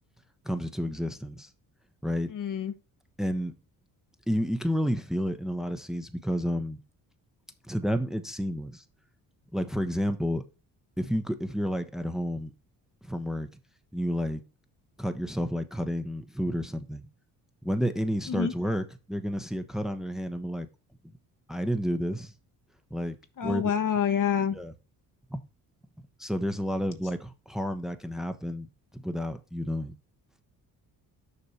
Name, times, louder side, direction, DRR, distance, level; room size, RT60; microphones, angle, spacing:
voice 1, 0.4-1.5 2.0-2.3 3.2-3.5 4.3-6.8 7.6-8.8 9.5-10.4 11.0-12.5 13.0-13.5 13.9-14.4 15.0-17.1 17.6-20.7 21.5-22.3 22.9-23.2 23.4-23.6 24.5-24.7 25.3-25.4 26.2-28.7 28.9-29.9, equal, ahead, 1.1 m, -30 dB
voice 2, 2.3-2.7 18.3-18.5 23.4-24.5, left 8 dB, 50° left, 1.2 m, -27 dB
6.9 x 5.3 x 4.3 m
supercardioid pair, 65°, 40 cm